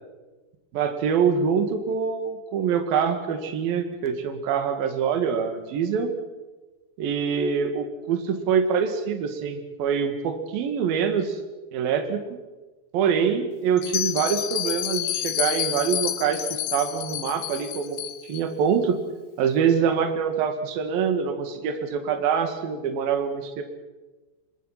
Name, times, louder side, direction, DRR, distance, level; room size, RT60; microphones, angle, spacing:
voice 1, 0.7-6.1 7.0-11.4 11.7-12.4 12.9-18.0 18.3-19.0 19.4-23.6, right 7 dB, 65° right, 7 dB, 3.5 m, -25 dB
Bell, 13.8-18.4, left 14 dB, 80° left, 2.9 m, -29 dB
24.5 x 22.0 x 5.8 m, 1.2 s
omnidirectional pair, 4.7 m